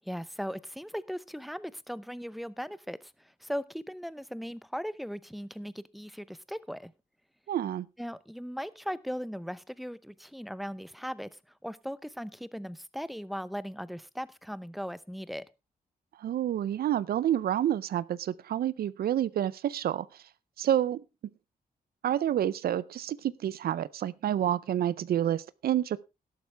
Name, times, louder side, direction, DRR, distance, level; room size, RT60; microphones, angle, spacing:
voice 1, 0.0-6.9 8.0-15.4, equal, ahead, 0.7 m, -38 dB
voice 2, 7.5-7.9 16.2-20.1 20.6-21.0 22.0-26.0, right 11 dB, 75° right, 0.6 m, -28 dB
13.0 x 11.5 x 3.4 m
cardioid pair, 100°, 16 cm